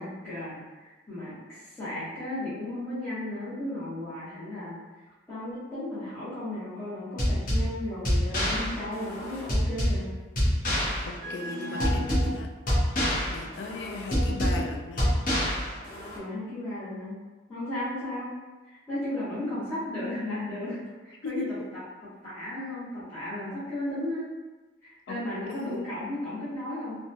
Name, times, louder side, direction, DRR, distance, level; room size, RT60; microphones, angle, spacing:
voice 1, 0.0-4.8 5.3-10.1 16.1-17.1 17.5-18.3 18.7-21.8 22.2-24.3 24.8-27.0, left 1 dB, 15° left, -16 dB, 0.9 m, -35 dB
sound 1, 7.2-16.2, equal, 45° left, 0.7 m, -27 dB
voice 2, 11.1-12.5 13.3-15.1 21.2-21.7 25.1-25.2 25.5-26.0, left 3 dB, 70° left, 3 dB, 0.3 m, -37 dB
2.7 x 2.2 x 2.6 m, 1.2 s
head